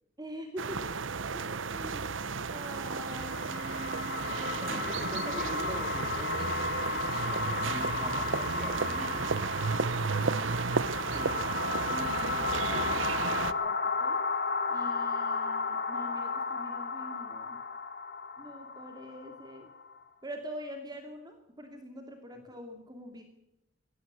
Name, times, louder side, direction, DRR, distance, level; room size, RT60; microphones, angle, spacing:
voice 1, 0.2-0.9 1.7-2.1 2.5-4.8 11.1-11.5 11.9-14.2 14.7-17.6 18.4-19.7 20.2-23.2, equal, 20° right, 5 dB, 2.6 m, -44 dB
sound 1, 0.6-13.5, right 4 dB, 70° right, 0.9 m, -33 dB
sound 2, 2.8-20.0, left 4 dB, 60° left, 3.3 m, -34 dB
voice 2, 4.7-9.3, equal, ahead, 7 dB, 3.1 m, -43 dB
22.0 x 17.5 x 8.2 m, 0.90 s
head